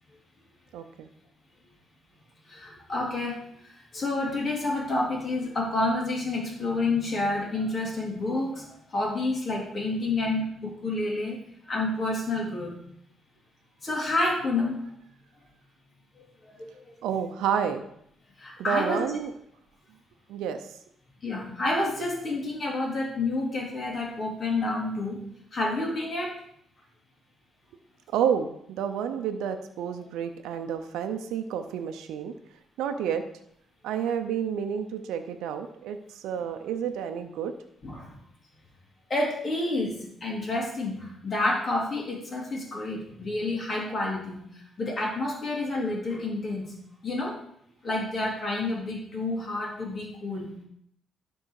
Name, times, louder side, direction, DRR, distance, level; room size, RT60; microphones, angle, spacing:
voice 1, 0.7-1.1 17.0-17.9 18.6-19.3 20.3-20.6 28.1-32.3 32.8-33.2 33.8-37.5, right 8 dB, 90° right, 7 dB, 0.7 m, -30 dB
voice 2, 2.5-11.4 11.7-12.8 13.8-14.8 16.2-17.2 18.4-19.0 21.2-25.2 25.5-26.3 37.8-38.1 39.1-44.4 44.8-46.7 47.0-47.4 47.8-50.5, left 2 dB, 40° left, -2 dB, 3.3 m, -29 dB
11.5 x 4.7 x 4.8 m, 0.70 s
cardioid pair, 90°, 0 cm